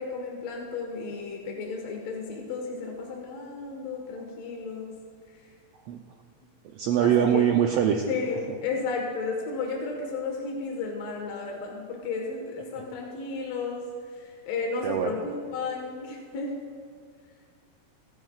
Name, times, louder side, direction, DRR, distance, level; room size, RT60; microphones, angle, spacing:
voice 1, 0.0-4.9 7.0-7.5 8.1-13.8 14.1-16.5, left 4 dB, 65° left, 0 dB, 2.5 m, -33 dB
voice 2, 6.6-8.0 14.8-15.1, right 9 dB, 80° right, 3 dB, 1.4 m, -23 dB
24.0 x 11.0 x 2.4 m, 2.1 s
omnidirectional pair, 3.5 m